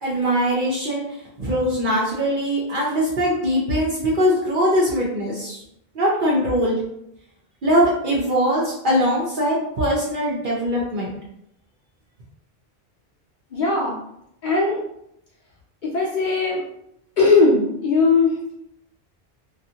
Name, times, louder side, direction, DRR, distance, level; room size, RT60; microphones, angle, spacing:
voice 1, 0.0-5.6 5.9-6.8 7.6-11.1, equal, 60° right, -5 dB, 0.7 m, -21 dB
voice 2, 13.5-14.0 14.4-14.8 15.8-16.6 17.2-18.3, left 3 dB, 55° left, -4 dB, 0.6 m, -18 dB
2.5 x 2.4 x 2.7 m, 0.77 s
omnidirectional pair, 1.1 m